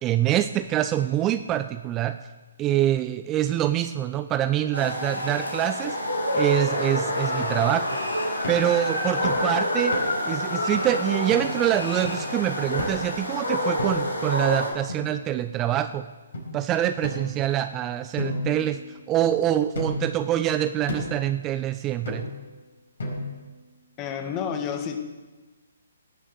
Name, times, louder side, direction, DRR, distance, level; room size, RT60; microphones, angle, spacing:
voice 1, 0.0-2.2 2.6-6.0 6.3-7.9 8.5-10.0 10.3-16.0 16.5-22.2, right 12 dB, 20° right, 10 dB, 0.5 m, -25 dB
sound 1, 4.7-14.7, left 1 dB, 85° left, 3.1 m, -27 dB
sound 2, 8.4-8.7 9.2-9.5 9.9-10.3 10.7-10.8 11.3-11.5 12.0-12.3 12.8-13.1 13.8-14.2 14.9-15.6 16.3-16.5 17.0-17.7 18.2-19.2 19.7-20.2 20.9-21.2 22.0-22.5 23.0-23.5, left 1 dB, 65° left, 4.8 m, -33 dB
voice 2, 24.0-25.0, left 7 dB, 25° left, 6 dB, 1.6 m, -30 dB
17.5 x 7.5 x 6.9 m, 1.2 s
figure-of-eight pair, 135°, 0 cm